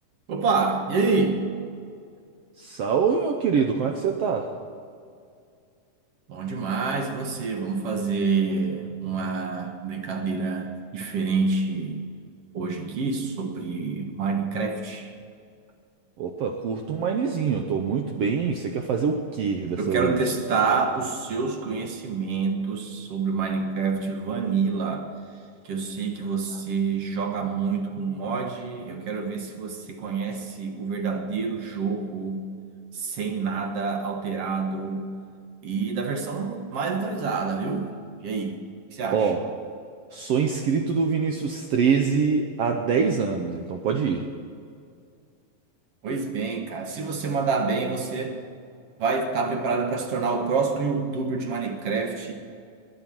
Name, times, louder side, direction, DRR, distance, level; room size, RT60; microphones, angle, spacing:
voice 1, 0.3-1.4 6.3-12.0 12.5-15.1 19.8-25.1 25.6-32.4 32.9-35.1 35.6-37.9 38.2-38.6 38.9-39.3 46.0-48.4 49.0-52.3, right 4 dB, 55° right, 4 dB, 1.9 m, -27 dB
voice 2, 2.6-4.5 16.2-20.2 39.1-39.5 40.1-44.3, right 6 dB, 85° right, 4 dB, 1.3 m, -24 dB
21.0 x 9.4 x 6.1 m, 2.3 s
omnidirectional pair, 4.0 m